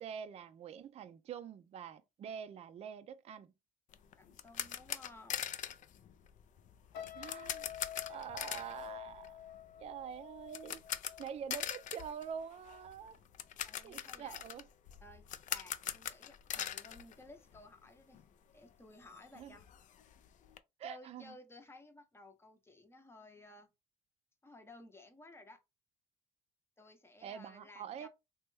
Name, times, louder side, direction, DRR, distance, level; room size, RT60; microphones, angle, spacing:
voice 1, 0.0-3.5 7.1-7.7 8.1-9.5 9.8-10.8 11.2-13.2 13.8-14.6 19.4-19.5 20.8-21.3 27.2-28.1, right 8 dB, 40° right, 0.4 m, -45 dB
sound 1, 3.9-17.9 18.1-18.3 18.7-18.8 19.0-20.6, left 10 dB, 50° left, 0.4 m, -43 dB
voice 2, 4.2-5.4 13.6-14.4 15.0-18.2 18.5-19.6 20.8-23.7 24.4-25.6 26.8-28.1, left 2 dB, 15° left, 0.7 m, -56 dB
sound 2, 6.9-12.2 12.5-12.9, left 10 dB, 85° left, 0.7 m, -50 dB
3.0 x 2.2 x 3.0 m
cardioid pair, 110°, 17 cm